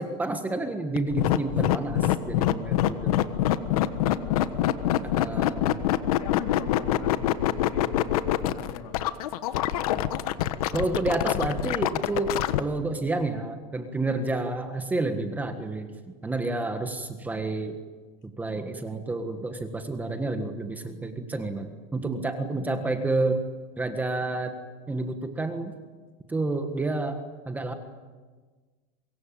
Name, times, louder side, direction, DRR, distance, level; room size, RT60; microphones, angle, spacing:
voice 1, 0.0-3.2 5.1-5.7 10.7-15.9 16.2-17.8 18.2-23.4 23.8-24.5 24.9-25.7 26.3-27.7, right 2 dB, 10° right, 7 dB, 1.6 m, -29 dB
sound 1, 1.0-12.6, left 13 dB, 90° left, 1.4 m, -24 dB
voice 2, 3.7-4.5 5.0-5.1 5.9-9.0, left 7 dB, 65° left, 3 dB, 4.0 m, -42 dB
24.5 x 22.0 x 9.0 m, 1.4 s
supercardioid pair, 160°, 18 cm